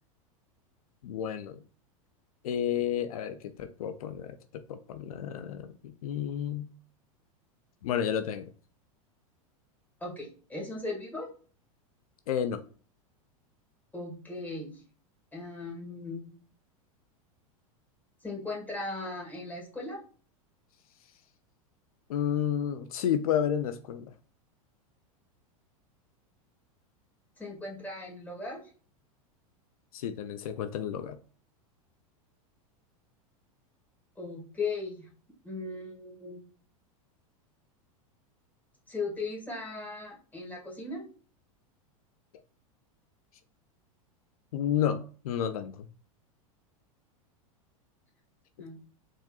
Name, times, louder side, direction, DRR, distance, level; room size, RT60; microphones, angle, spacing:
voice 1, 1.0-1.6 2.4-6.7 7.8-8.5 12.3-12.6 22.1-24.1 29.9-31.2 44.5-45.9, left 9 dB, 80° left, 10 dB, 0.4 m, -31 dB
voice 2, 10.0-11.3 13.9-14.7 15.3-16.3 18.2-20.0 27.4-28.6 34.2-35.1 35.4-36.4 38.9-41.0 48.6-48.8, left 3 dB, 10° left, -2 dB, 2.1 m, -37 dB
4.2 x 3.7 x 2.3 m, 0.41 s
hypercardioid pair, 110°, 18 cm